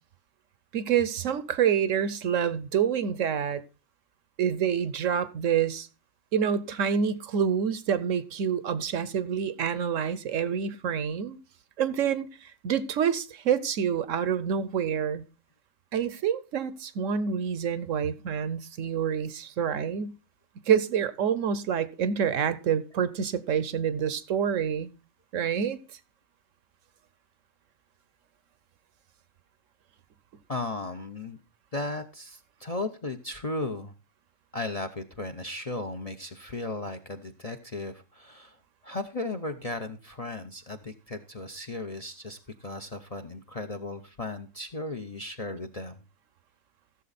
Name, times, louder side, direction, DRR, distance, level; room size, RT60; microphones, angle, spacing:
voice 1, 0.7-3.6 4.4-5.9 6.3-11.4 11.8-15.2 15.9-20.2 20.7-24.9 25.3-25.8, right 8 dB, 70° right, 1.0 m, -27 dB
voice 2, 30.5-31.4 31.7-33.9 34.5-38.6 38.8-46.0, left 2 dB, 35° left, 0.6 m, -36 dB
15.0 x 7.1 x 4.0 m
omnidirectional pair, 1.5 m